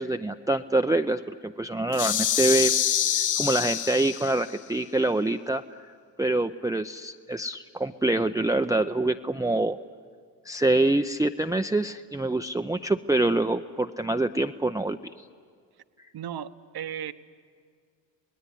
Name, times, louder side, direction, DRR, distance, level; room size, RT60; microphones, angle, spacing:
voice 1, 0.0-2.7 3.1-5.8 6.2-9.8 10.4-15.1, right 2 dB, 10° right, 7 dB, 0.6 m, -25 dB
sound 1, 1.9-4.5, left 9 dB, 40° left, 0.7 m, -26 dB
voice 2, 16.1-17.1, right 9 dB, 55° right, 12 dB, 1.1 m, -35 dB
26.5 x 19.5 x 9.9 m, 2.1 s
supercardioid pair, 55°, 46 cm